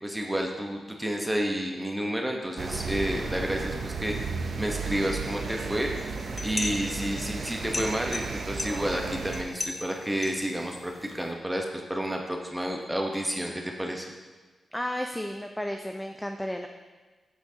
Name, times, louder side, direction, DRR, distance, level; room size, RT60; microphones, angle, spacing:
voice 1, 0.0-14.1, equal, 10° right, 1 dB, 1.1 m, -30 dB
sound 1, 2.6-9.4, right 4 dB, 65° right, 0.6 m, -34 dB
sound 2, 6.1-11.3, left 3 dB, 45° left, 0.7 m, -38 dB
voice 2, 14.7-16.7, left 1 dB, 10° left, 4 dB, 0.5 m, -33 dB
8.5 x 6.0 x 2.9 m, 1.3 s
cardioid pair, 50°, 0 cm